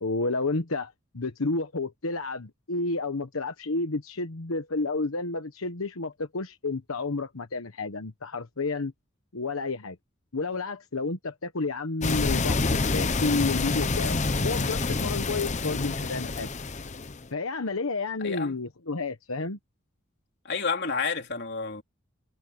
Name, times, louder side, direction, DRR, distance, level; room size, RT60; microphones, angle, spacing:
voice 1, 0.0-8.9 9.3-10.0 10.3-14.2 14.4-16.5 17.3-19.6, left 3 dB, 85° left, 1.2 m, -30 dB
sound 1, 12.0-17.3, left 3 dB, 35° left, 0.8 m, -27 dB
voice 2, 18.2-18.6 20.5-21.8, left 5 dB, 55° left, 3.7 m, -30 dB
head